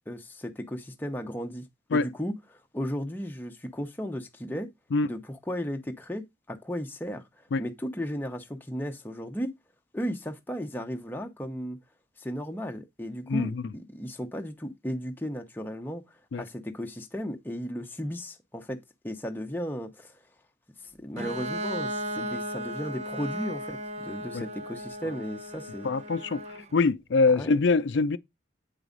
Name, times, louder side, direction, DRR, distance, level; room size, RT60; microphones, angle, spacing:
voice 1, 0.1-1.6 1.9-4.7 5.0-7.2 7.6-9.5 9.9-11.8 12.2-16.0 16.4-18.8 19.0-20.2 21.0-25.9 27.4-27.5, equal, 10° left, 0.8 m, -35 dB
voice 2, 13.3-13.6 16.3-16.4 24.3-24.4 25.8-26.4 26.7-28.2, left 3 dB, 80° left, 0.5 m, -24 dB
Bowed string instrument, 21.2-26.8, right 1 dB, 35° right, 0.6 m, -36 dB
8.2 x 4.7 x 3.9 m
head